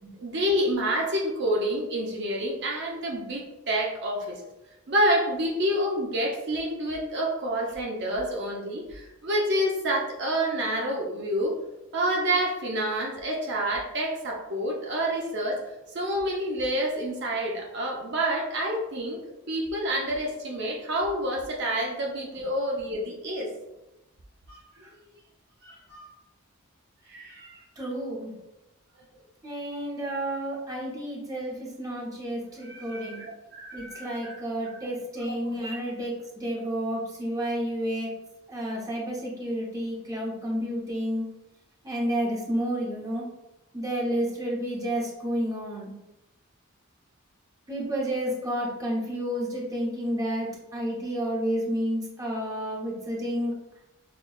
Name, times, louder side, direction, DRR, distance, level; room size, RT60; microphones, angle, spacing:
voice 1, 0.2-4.4 4.9-11.5 11.9-15.6 15.9-19.2 19.5-23.5 24.5-24.9 25.6-26.0 27.1-27.6 32.6-34.6 35.2-35.7, right 1 dB, 55° right, -1 dB, 0.6 m, -28 dB
voice 2, 27.8-28.3 29.4-33.2 33.7-38.1 38.5-41.3 41.8-43.3 43.7-45.9 47.7-53.6, equal, 15° right, -3 dB, 0.7 m, -30 dB
6.1 x 2.2 x 2.3 m, 0.95 s
head